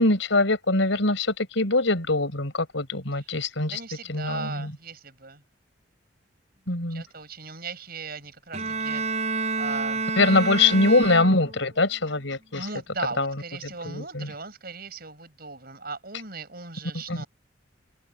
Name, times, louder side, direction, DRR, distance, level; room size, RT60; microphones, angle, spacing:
voice 1, 0.0-3.8 4.1-4.7 6.7-7.0 10.2-12.7 13.2-13.3 13.8-14.3 17.1-17.2, left 2 dB, 75° left, 4.7 m, -23 dB
voice 2, 3.7-5.4 6.9-9.2 9.6-10.8 12.5-17.3, right 4 dB, 50° right, 7.7 m, -38 dB
Bowed string instrument, 8.5-11.7, right 4 dB, 35° right, 7.7 m, -29 dB
open air
head